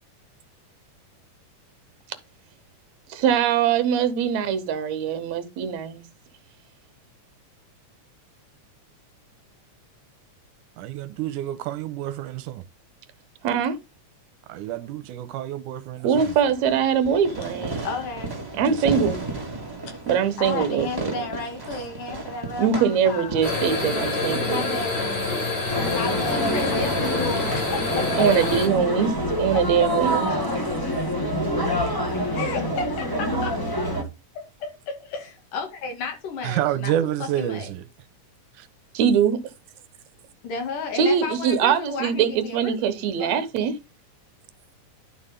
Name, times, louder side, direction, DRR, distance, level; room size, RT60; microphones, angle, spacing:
voice 1, 3.1-6.0 13.4-13.8 16.0-17.8 18.6-19.2 20.1-21.3 22.6-24.8 28.2-30.3 38.9-39.4 40.9-43.7, right 7 dB, 65° right, 2.2 m, -22 dB
voice 2, 10.8-12.6 14.5-16.4 18.6-19.1 36.4-37.8 38.6-38.7, right 12 dB, 85° right, 2.2 m, -29 dB
Fireworks, 16.1-25.2, right 2 dB, 10° right, 1.2 m, -35 dB
voice 3, 17.8-18.4 19.9-20.1 20.4-23.6 24.5-25.0 25.9-28.3 29.5-29.9 31.9-32.0 32.3-33.5 34.3-34.7 35.1-37.7 40.4-43.5, left 4 dB, 80° left, 3.8 m, -33 dB
sound 1, 23.4-28.7, left 3 dB, 65° left, 6.1 m, -27 dB
sound 2, 25.7-34.0, equal, 35° left, 0.3 m, -26 dB
11.5 x 5.5 x 3.7 m
omnidirectional pair, 3.6 m